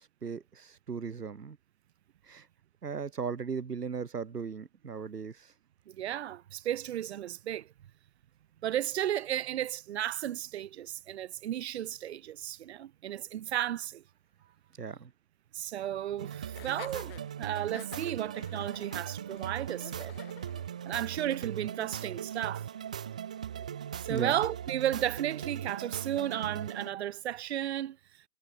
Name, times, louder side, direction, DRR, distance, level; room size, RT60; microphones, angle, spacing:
voice 1, 0.0-1.6 2.2-2.5 2.8-5.5 14.8-15.1 24.1-24.4, right 6 dB, 75° right, 2.2 m, -37 dB
voice 2, 5.9-7.7 8.6-14.0 15.5-20.1 20.8-22.7 24.0-28.0, right 12 dB, 40° right, 1.9 m, -34 dB
sound 1, 16.2-26.9, right 9 dB, 5° right, 0.5 m, -39 dB
Laughter, 16.5-21.5, left 14 dB, 35° left, 4.9 m, -50 dB
figure-of-eight pair, 135°, 48 cm